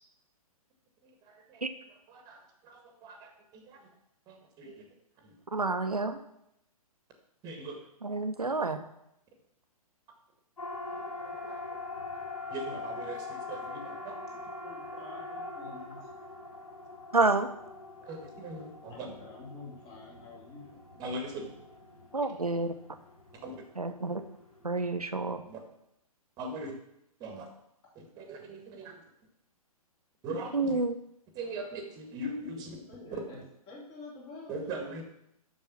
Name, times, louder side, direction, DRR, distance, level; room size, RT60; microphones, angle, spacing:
voice 1, 1.0-1.6 2.1-3.9 4.3-4.9 5.2-5.3 7.4-7.8 10.9-11.6 12.5-14.1 18.1-19.1 21.0-21.5 23.4-23.6 25.5-25.6 26.4-26.8 27.2-27.5 28.0-29.0 30.2-30.8 31.3-32.8 33.1-33.2 34.5-35.0, right 2 dB, 20° right, 4 dB, 1.7 m, -40 dB
voice 2, 5.5-6.2 8.0-8.8 17.1-17.5 22.1-22.7 23.8-24.2 24.6-25.4 30.5-30.9, right 3 dB, 80° right, 8 dB, 1.0 m, -29 dB
Siren, 10.6-24.9, left 3 dB, 70° left, 2.9 m, -43 dB
voice 3, 14.6-16.1 18.9-20.8 32.4-33.4 33.7-34.5, left 3 dB, 25° left, -3 dB, 3.2 m, -48 dB
7.4 x 6.5 x 6.0 m, 0.78 s
figure-of-eight pair, 120°, 19 cm